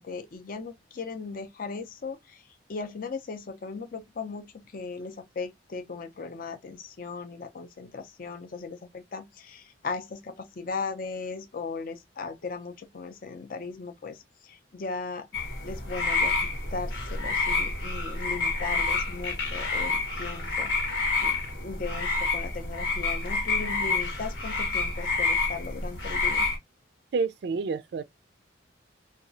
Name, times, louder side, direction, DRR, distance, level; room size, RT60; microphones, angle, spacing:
voice 1, 0.0-15.3 15.6-26.5, left 4 dB, 50° left, 0.5 m, -38 dB
sound 1, 15.3-26.6, left 3 dB, 90° left, 1.1 m, -28 dB
voice 2, 27.1-28.0, right 4 dB, 60° right, 0.3 m, -28 dB
2.9 x 2.3 x 2.6 m
head